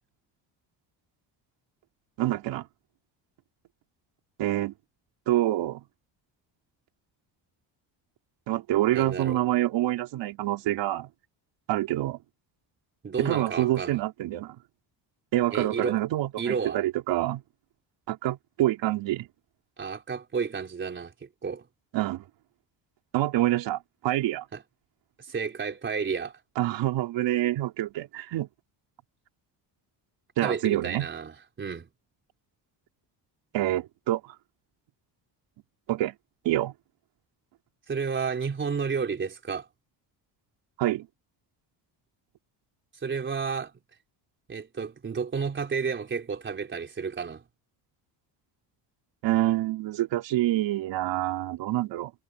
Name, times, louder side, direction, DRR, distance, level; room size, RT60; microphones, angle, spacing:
voice 1, 2.2-2.7 4.4-4.7 5.3-5.8 8.5-11.1 11.7-12.2 13.2-14.6 15.3-17.4 18.1-19.3 21.9-22.2 23.1-24.5 26.6-28.5 30.4-31.1 33.5-34.4 35.9-36.1 36.4-36.7 40.8-41.1 49.2-52.1, right 15 dB, 80° right, 4.0 m, -26 dB
voice 2, 8.9-9.4 13.0-14.0 15.5-16.0 16.4-16.8 19.8-21.7 24.5-24.6 25.3-26.3 30.4-31.9 37.9-39.7 43.0-43.7 44.5-47.4, right 5 dB, 25° right, 3.8 m, -31 dB
cardioid pair, 170°, 43 cm